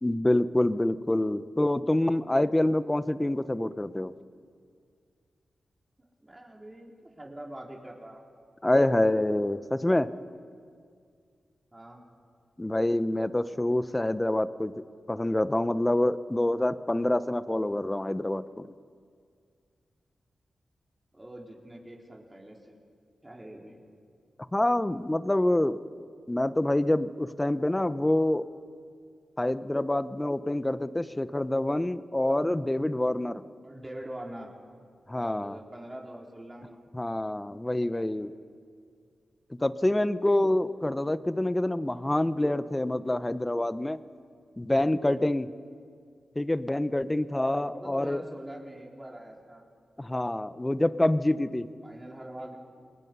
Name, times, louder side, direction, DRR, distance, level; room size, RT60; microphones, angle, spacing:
voice 1, 0.0-4.1 8.6-10.1 12.6-14.7 15.1-18.7 24.5-25.8 26.3-28.4 29.4-33.4 35.1-35.6 36.9-38.3 39.6-44.0 44.6-45.5 46.4-48.2 50.0-51.7, left 1 dB, 20° left, 14 dB, 0.9 m, -26 dB
voice 2, 6.2-8.2 11.7-12.0 21.1-22.8 23.2-23.8 33.6-34.5 35.2-36.8 37.4-38.1 47.6-49.6 51.8-52.6, right 1 dB, 20° right, -1 dB, 4.3 m, -44 dB
28.0 x 20.0 x 5.5 m, 2.2 s
cardioid pair, 50°, 0 cm